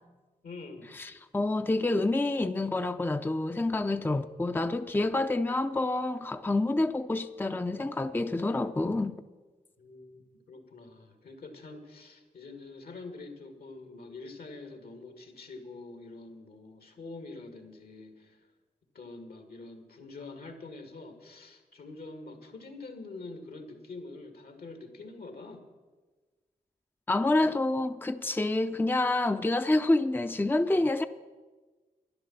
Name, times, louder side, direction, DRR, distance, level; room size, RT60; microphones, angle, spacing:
voice 1, 0.4-0.9 9.8-18.5 18.9-25.6, left 3 dB, 70° left, 2.1 m, -45 dB
voice 2, 0.9-9.2 27.1-31.0, left 2 dB, 10° left, 0.6 m, -28 dB
11.5 x 10.5 x 7.2 m
supercardioid pair, 40°, 16 cm